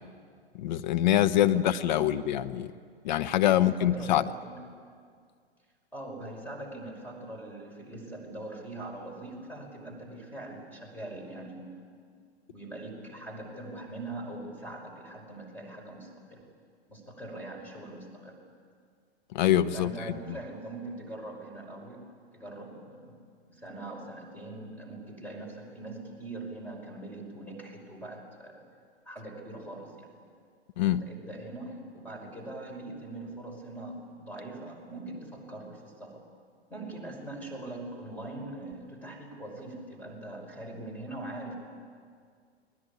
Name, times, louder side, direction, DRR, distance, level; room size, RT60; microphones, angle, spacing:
voice 1, 0.5-2.7 3.0-4.3 19.3-20.0 30.8-31.0, left 12 dB, 45° left, 1.1 m, -24 dB
voice 2, 1.3-2.2 3.5-4.6 5.9-11.7 12.5-16.4 16.9-18.4 19.7-22.1 22.3-23.2 23.5-28.6 29.1-30.1 30.8-36.2 36.7-41.5, right 2 dB, 5° left, 5.6 m, -42 dB
30.0 x 21.0 x 8.5 m
figure-of-eight pair, 110°, 32 cm